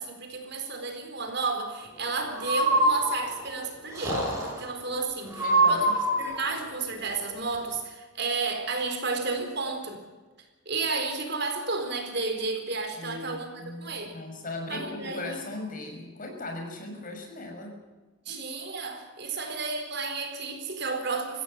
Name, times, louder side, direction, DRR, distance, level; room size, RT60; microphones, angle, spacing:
voice 1, 0.0-5.9 6.2-10.0 10.7-14.2 14.7-15.4 18.3-21.4, right 3 dB, 55° right, 5 dB, 4.2 m, -32 dB
Breathing, 2.3-3.5 3.9-4.6 5.3-6.4, right 1 dB, 15° right, 6.7 m, -24 dB
voice 2, 5.3-5.9 6.4-6.6 13.0-17.7 18.3-18.4 19.3-19.4, left 2 dB, 40° left, 2 dB, 6.1 m, -38 dB
24.0 x 16.5 x 7.8 m, 1.2 s
head